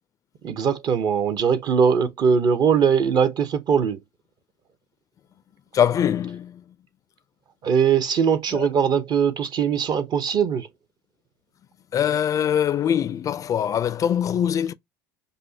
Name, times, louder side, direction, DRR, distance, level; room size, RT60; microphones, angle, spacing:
voice 1, 0.4-4.0 7.6-10.7, right 7 dB, 45° right, 0.8 m, -21 dB
voice 2, 5.7-6.6 8.5-8.7 11.9-14.7, left 9 dB, 35° left, 0.4 m, -23 dB
5.1 x 2.1 x 2.7 m
supercardioid pair, 105°, 10 cm